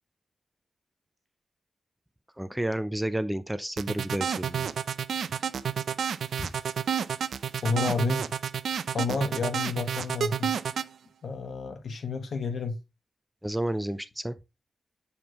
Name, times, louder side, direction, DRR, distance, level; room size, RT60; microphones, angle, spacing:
voice 1, 2.4-4.7 13.4-14.4, right 1 dB, 5° right, 0.4 m, -31 dB
sound 1, 3.8-10.9, right 8 dB, 80° right, 0.4 m, -30 dB
voice 2, 7.6-8.2 8.9-10.5 11.2-12.8, left 4 dB, 60° left, 1.2 m, -30 dB
7.1 x 4.9 x 3.0 m
cardioid pair, 95°, 0 cm